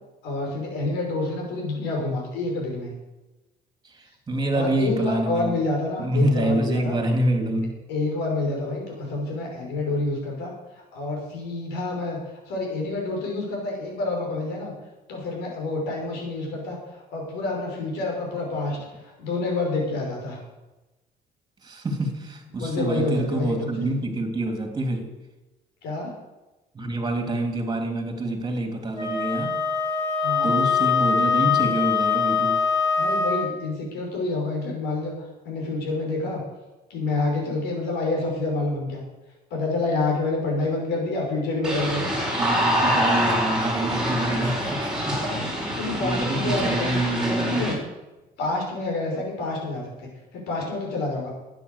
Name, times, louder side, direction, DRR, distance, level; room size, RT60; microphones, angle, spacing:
voice 1, 0.2-2.9 4.5-7.0 7.9-12.2 12.5-14.7 15.1-20.4 22.6-23.9 25.8-26.1 30.2-30.6 33.0-36.4 36.9-39.0 39.5-42.2 45.2-45.4 45.7-47.0 47.4-47.7 48.4-51.3, left 2 dB, 85° left, -1 dB, 5.6 m, -28 dB
voice 2, 3.8-5.5 6.0-7.8 21.6-25.2 26.7-29.6 30.4-32.6 42.4-45.2 46.0-47.6, right 1 dB, 25° right, 5 dB, 3.1 m, -26 dB
Wind instrument woodwind instrument, 28.9-33.5, left 5 dB, 25° left, 4.8 m, -23 dB
sound 1, 41.6-47.7, equal, 5° right, 5.0 m, -25 dB
12.5 x 9.4 x 6.8 m, 1.1 s
cardioid pair, 110°, 17 cm